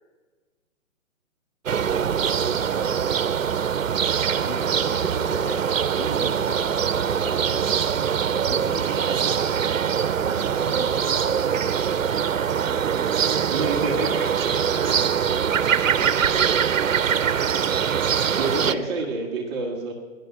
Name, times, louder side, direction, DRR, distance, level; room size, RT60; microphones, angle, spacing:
sound 1, 1.7-18.8, right 7 dB, 80° right, 0.8 m, -23 dB
voice 1, 2.4-3.3 13.9-15.3, left 2 dB, 25° left, 2 dB, 1.7 m, -44 dB
voice 2, 4.4-7.8 8.3-9.4 10.3-11.4 18.6-19.0, left 3 dB, 65° left, 4 dB, 2.4 m, -37 dB
voice 3, 13.5-14.5 18.4-19.9, right 2 dB, 20° right, -1 dB, 1.4 m, -28 dB
19.0 x 11.0 x 5.9 m, 1.4 s
hypercardioid pair, 160°, 39 cm